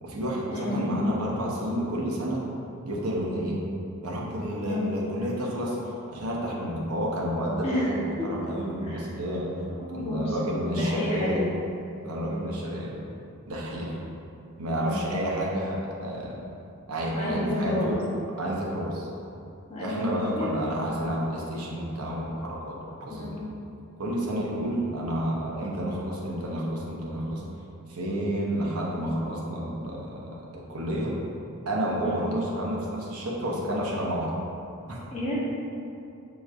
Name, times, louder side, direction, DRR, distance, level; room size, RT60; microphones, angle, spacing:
voice 1, 0.0-2.4 2.8-3.6 4.0-5.8 6.1-9.5 9.9-11.4 12.0-12.9 13.5-14.0 14.6-16.4 16.9-18.0 18.4-19.1 19.8-22.7 23.0-23.4 24.0-27.4 27.9-31.1 31.7-34.3 34.9-35.0, equal, 85° right, -3 dB, 0.8 m, -30 dB
voice 2, 0.5-1.0 4.6-4.9 7.6-8.3 8.8-9.0 9.7-10.4 10.6-11.5 14.7-15.4 17.1-18.0 19.7-20.6 23.1-23.5 32.0-32.3 35.1-35.4, left 1 dB, 30° left, -8 dB, 0.8 m, -31 dB
6.2 x 3.0 x 2.5 m, 2.6 s
head